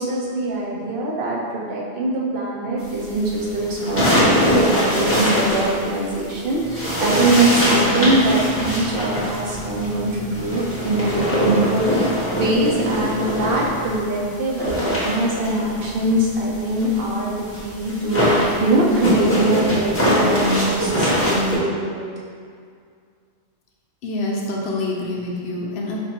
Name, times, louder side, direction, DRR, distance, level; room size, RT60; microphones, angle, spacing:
voice 1, 0.0-17.3 17.6-22.1, right 2 dB, 55° right, -4 dB, 0.7 m, -22 dB
sound 1, 3.1-6.3 6.7-14.0 14.2-21.6, equal, 10° left, 0.9 m, -22 dB
sound 2, 6.6-14.0, right 1 dB, 75° right, 1.3 m, -39 dB
voice 2, 24.0-26.1, left 2 dB, 65° left, -2 dB, 0.8 m, -26 dB
5.3 x 2.5 x 2.8 m, 2.1 s
omnidirectional pair, 1.3 m